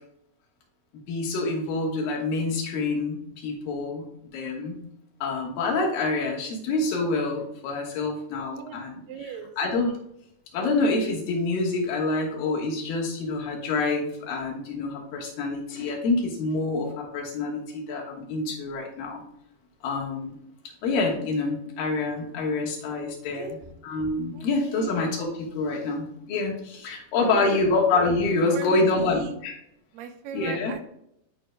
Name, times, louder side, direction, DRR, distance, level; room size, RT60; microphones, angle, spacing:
voice 1, 1.1-4.0 4.3-4.8 5.2-9.0 9.6-10.0 10.5-19.2 19.8-20.4 20.8-23.6 23.8-29.6 30.3-30.7, left 3 dB, 85° left, 0 dB, 3.1 m, -27 dB
voice 2, 9.1-9.5 23.3-23.6 24.3-24.5 24.7-24.9 27.2-27.7 28.5-29.4 29.9-30.8, right 8 dB, 85° right, 7 dB, 2.4 m, -37 dB
11.5 x 5.1 x 2.2 m, 0.74 s
omnidirectional pair, 4.0 m